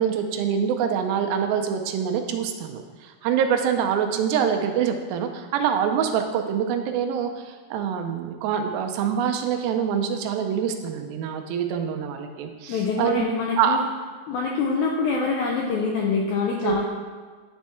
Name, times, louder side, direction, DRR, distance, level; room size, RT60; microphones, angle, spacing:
voice 1, 0.0-13.8 16.6-16.8, right 8 dB, 90° right, 5 dB, 2.5 m, -25 dB
voice 2, 12.7-13.8 14.3-16.8, left 4 dB, 85° left, -1 dB, 1.7 m, -25 dB
10.5 x 3.5 x 4.3 m, 1.5 s
omnidirectional pair, 4.1 m